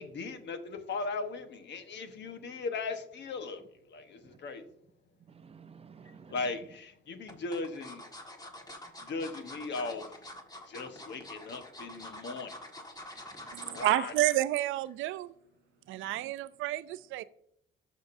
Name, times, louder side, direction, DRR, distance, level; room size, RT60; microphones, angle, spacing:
voice 1, 0.0-3.6 3.9-4.6 6.3-8.0 9.0-10.2 10.7-12.5 13.6-14.1, left 4 dB, 65° left, 1.2 m, -38 dB
voice 2, 5.3-6.4 13.3-13.8 15.9-16.3, right 6 dB, 30° right, 0.5 m, -55 dB
sound 1, 6.0-6.6 7.3-14.0 14.4-14.6 14.9-15.0, left 1 dB, 20° left, 1.6 m, -46 dB
voice 3, 13.5-15.3 15.9-17.2, right 15 dB, 90° right, 0.4 m, -30 dB
13.5 x 5.1 x 2.6 m
cardioid pair, 90°, 20 cm